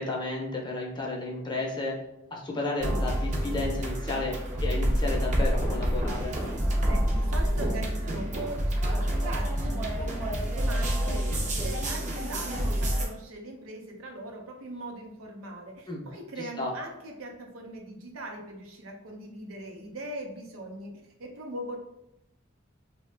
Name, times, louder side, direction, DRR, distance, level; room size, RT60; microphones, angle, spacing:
voice 1, 0.0-2.0 2.3-6.4 15.9-16.0 16.4-16.7, left 2 dB, 20° left, -1 dB, 0.6 m, -32 dB
sound 1, 2.8-13.0, equal, 35° right, 0.6 m, -28 dB
voice 2, 6.8-21.8, right 1 dB, 80° right, 1 dB, 0.6 m, -41 dB
2.8 x 2.2 x 3.2 m, 0.85 s
head